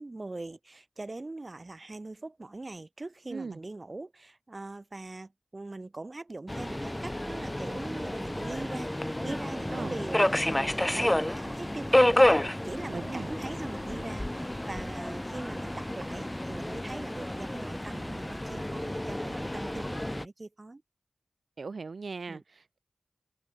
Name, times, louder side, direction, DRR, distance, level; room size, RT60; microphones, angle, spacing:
voice 1, 0.0-12.2 12.6-20.8 22.3-22.4, right 2 dB, 40° right, 5.0 m, -42 dB
Subway metro underground, 6.5-20.2, left 1 dB, 15° left, 0.9 m, -30 dB
voice 2, 12.9-13.3 21.6-22.8, right 4 dB, 80° right, 2.4 m, -39 dB
open air
wide cardioid pair, 80°, 0 cm